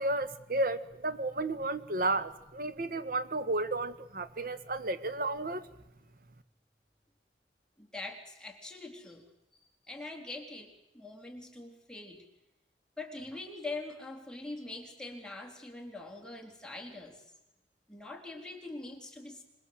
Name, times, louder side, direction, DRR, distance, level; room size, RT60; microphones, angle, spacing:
voice 1, 0.0-5.6, right 2 dB, 55° right, 11 dB, 1.6 m, -32 dB
voice 2, 7.8-9.2 9.5-12.2 13.0-17.2 17.9-19.4, left 2 dB, 5° left, 1 dB, 3.9 m, -43 dB
26.0 x 21.0 x 7.9 m, 0.91 s
head